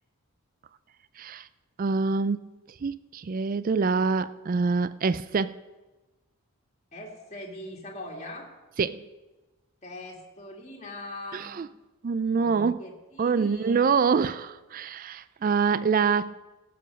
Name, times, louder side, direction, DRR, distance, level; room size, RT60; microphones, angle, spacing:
voice 1, 1.2-1.5 1.8-2.5 2.8-5.6 8.8-9.0 11.3-11.7 12.0-12.8 13.2-16.3, right 5 dB, 40° right, 15 dB, 0.3 m, -25 dB
voice 2, 6.9-8.5 9.8-11.7 12.4-13.9, left 1 dB, 30° left, -1 dB, 2.1 m, -42 dB
16.5 x 7.7 x 5.3 m, 1.1 s
head